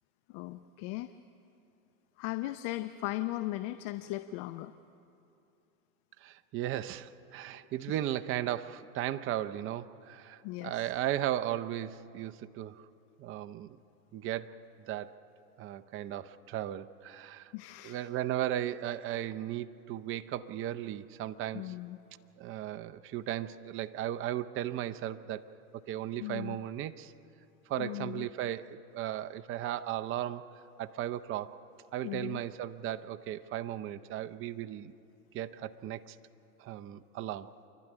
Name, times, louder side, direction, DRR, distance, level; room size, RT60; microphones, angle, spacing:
voice 1, 0.3-1.1 2.2-4.7 7.9-8.0 10.4-10.9 17.5-18.1 21.5-22.0 26.2-26.6 27.8-28.3 32.0-32.4, left 17 dB, 45° left, 11 dB, 0.8 m, -38 dB
voice 2, 6.2-12.8 13.2-13.8 14.1-14.6 14.9-15.1 15.6-17.5 17.8-21.7 22.4-25.5 25.9-27.1 27.7-30.5 30.8-31.6 31.9-34.9 35.3-36.2 36.6-37.5, right 12 dB, 30° right, 10 dB, 0.6 m, -36 dB
28.5 x 12.0 x 9.9 m, 2.7 s
hypercardioid pair, 115°, 46 cm